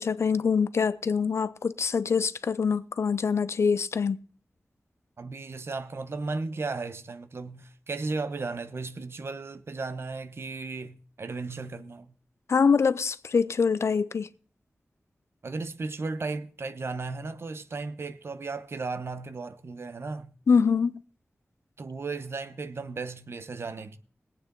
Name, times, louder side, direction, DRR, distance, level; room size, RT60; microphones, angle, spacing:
voice 1, 0.0-4.2 12.5-14.3 20.5-21.0, left 5 dB, 85° left, 0.6 m, -24 dB
voice 2, 5.2-12.1 15.4-20.3 21.8-24.0, right 3 dB, 70° right, 1.0 m, -35 dB
21.5 x 8.7 x 3.9 m
wide cardioid pair, 90°, 5 cm